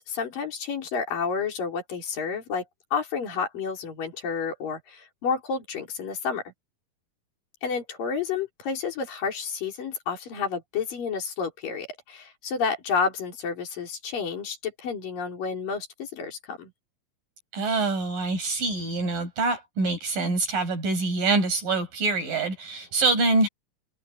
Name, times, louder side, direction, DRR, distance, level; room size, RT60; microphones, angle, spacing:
voice 1, 0.0-2.6 2.9-6.5 7.6-16.7, left 5 dB, 85° left, 6.0 m, -30 dB
voice 2, 17.5-23.5, right 3 dB, 80° right, 8.1 m, -25 dB
omnidirectional pair, 3.9 m